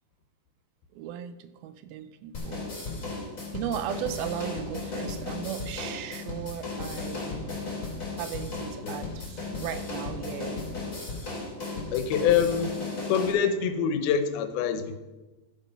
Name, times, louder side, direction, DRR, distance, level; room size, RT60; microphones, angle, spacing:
voice 1, 0.9-2.7 3.5-10.6, right 10 dB, 80° right, 11 dB, 2.4 m, -37 dB
sound 1, 2.3-13.3, left 3 dB, 20° left, 3.1 m, -35 dB
voice 2, 11.9-12.7 13.1-15.0, left 7 dB, 80° left, 9 dB, 2.7 m, -25 dB
12.5 x 7.5 x 5.5 m, 1.1 s
omnidirectional pair, 4.4 m